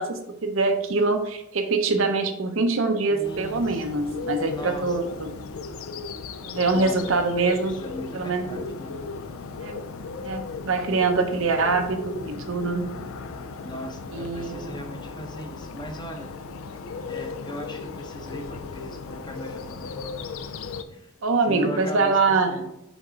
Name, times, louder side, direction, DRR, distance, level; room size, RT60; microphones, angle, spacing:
voice 1, 0.0-5.3 6.4-7.7 8.1-8.6 9.6-9.8 10.2-12.9 14.1-14.7 21.2-22.6, right 3 dB, 65° right, 6 dB, 0.7 m, -24 dB
voice 2, 3.1-4.0 4.4-5.3 6.7-7.1 7.6-9.1 13.6-16.3 17.1-20.3 20.9-21.1 21.4-22.7, equal, 20° left, 4 dB, 0.7 m, -39 dB
Bird, 3.2-20.8, left 4 dB, 70° left, 0.4 m, -36 dB
5.3 x 3.6 x 5.0 m, 0.85 s
head